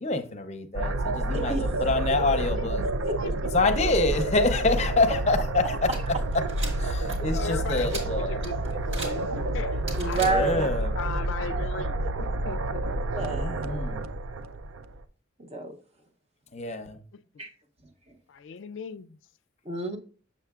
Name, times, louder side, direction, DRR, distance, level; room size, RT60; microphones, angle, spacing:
voice 1, 0.0-2.8 3.5-5.9 6.3-6.4 6.8-8.4 10.2-10.9 13.3-14.1 16.5-17.0, left 3 dB, 35° left, 0.6 m, -26 dB
sound 1, 0.7-15.0, right 2 dB, 85° right, 0.5 m, -29 dB
voice 2, 1.3-1.6 3.1-3.2 10.0-10.7 13.1-13.7 15.4-15.8 17.4-17.5 18.1-18.2 19.6-20.0, right 3 dB, 30° right, 0.7 m, -29 dB
voice 3, 2.1-3.5 7.3-12.9 18.3-19.2, left 6 dB, 70° left, 0.3 m, -38 dB
sound 2, 5.8-10.8, right 1 dB, 70° right, 1.6 m, -41 dB
6.9 x 6.7 x 2.4 m
head